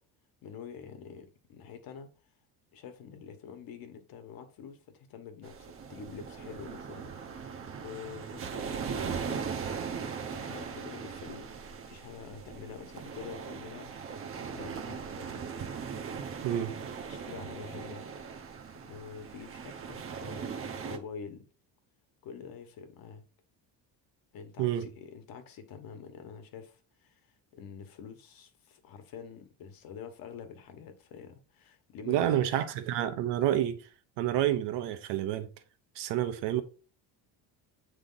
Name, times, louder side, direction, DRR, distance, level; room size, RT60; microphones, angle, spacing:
voice 1, 0.4-2.1 2.7-7.2 7.5-7.6 7.8-9.5 9.9-13.9 14.5-15.5 17.1-18.0 18.8-20.5 20.8-21.5 22.2-23.2 24.3-27.2 27.5-32.6, left 6 dB, 55° left, 1.3 m, -47 dB
sound 1, 5.4-21.0, right 6 dB, 30° right, 0.7 m, -39 dB
voice 2, 16.4-16.7 24.6-24.9 32.1-33.9 34.2-35.5 35.9-36.6, right 12 dB, 80° right, 1.0 m, -29 dB
8.3 x 3.4 x 3.9 m
cardioid pair, 170°, 41 cm